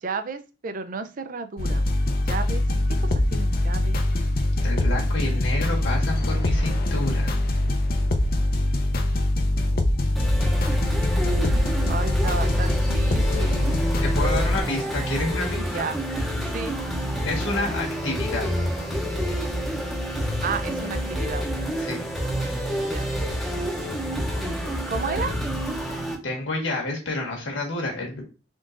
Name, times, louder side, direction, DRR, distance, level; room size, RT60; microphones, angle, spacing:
voice 1, 0.0-1.8 2.3-2.6 3.0-4.0 9.0-9.2 9.5-10.8 11.4-14.0 15.7-16.0 16.5-16.8 20.4-21.4 22.8-23.1 24.4-25.3, right 4 dB, 45° right, 9 dB, 0.4 m, -33 dB
sound 1, 1.6-14.6, left 1 dB, 50° left, 0.5 m, -23 dB
voice 2, 4.6-7.3 14.0-15.8 17.2-18.7 21.8-22.0 25.9-28.2, left 2 dB, 75° left, -1 dB, 1.5 m, -29 dB
sound 2, 10.2-26.2, equal, ahead, 0.7 m, -28 dB
3.7 x 3.7 x 2.5 m, 0.32 s
head